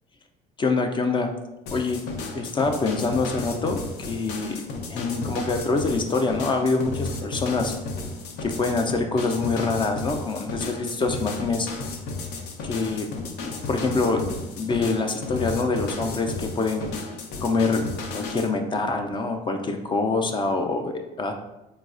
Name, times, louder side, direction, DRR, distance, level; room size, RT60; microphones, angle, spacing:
voice 1, 0.6-1.3 1.7-2.0 2.3-4.6 4.9-7.7 8.4-11.7 12.6-13.1 13.4-16.9 17.4-21.3, left 3 dB, 30° left, 4 dB, 0.3 m, -25 dB
sound 1, 1.7-18.5, left 3 dB, 85° left, 0.5 m, -34 dB
4.0 x 2.2 x 2.4 m, 0.96 s
cardioid pair, 110°, 17 cm